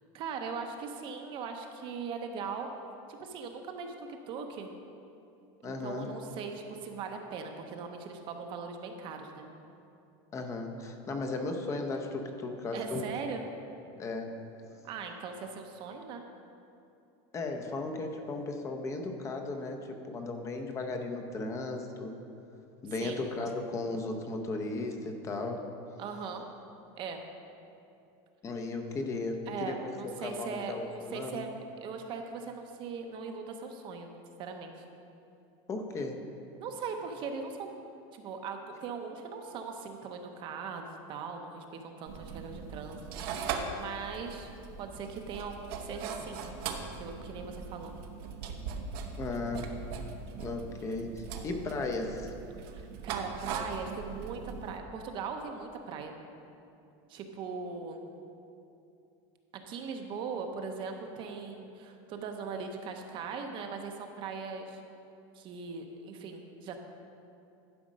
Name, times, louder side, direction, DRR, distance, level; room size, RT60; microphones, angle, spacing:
voice 1, 0.1-2.7 3.1-4.7 5.6-9.5 12.7-13.4 14.8-16.2 23.0-23.2 26.0-26.5 27.0-27.2 29.5-31.5 31.8-34.1 34.4-34.7 36.6-37.7 38.1-43.0 43.4-44.5 44.8-46.5 46.9-47.9 52.7-56.1 57.1-58.1 59.5-64.8 65.3-66.8, right 5 dB, 40° right, 4 dB, 0.7 m, -40 dB
voice 2, 5.6-6.1 10.3-13.1 14.0-14.3 17.3-22.1 22.8-25.6 28.4-29.9 30.2-31.4 35.7-36.2 49.2-49.7 50.4-52.3, left 3 dB, 20° left, 4 dB, 0.7 m, -36 dB
sound 1, 42.1-54.8, right 5 dB, 70° right, 0.9 m, -40 dB
11.5 x 5.1 x 5.2 m, 2.7 s
supercardioid pair, 155°, 13 cm